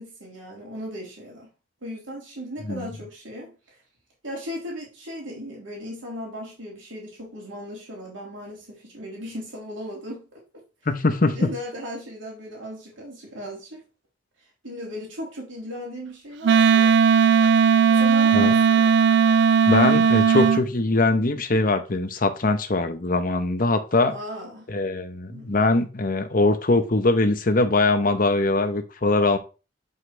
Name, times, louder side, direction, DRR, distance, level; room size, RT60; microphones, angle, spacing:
voice 1, 0.0-1.5 1.8-3.8 4.2-10.4 11.2-13.8 14.6-16.9 17.9-18.9 24.1-24.7 25.3-25.6, equal, 80° right, 3.2 m, -37 dB
voice 2, 10.9-11.5 18.3-18.5 19.7-24.1 24.7-29.4, left 2 dB, 45° left, 0.9 m, -22 dB
Wind instrument woodwind instrument, 16.4-20.6, right 6 dB, 60° right, 0.3 m, -17 dB
7.8 x 5.6 x 3.3 m
head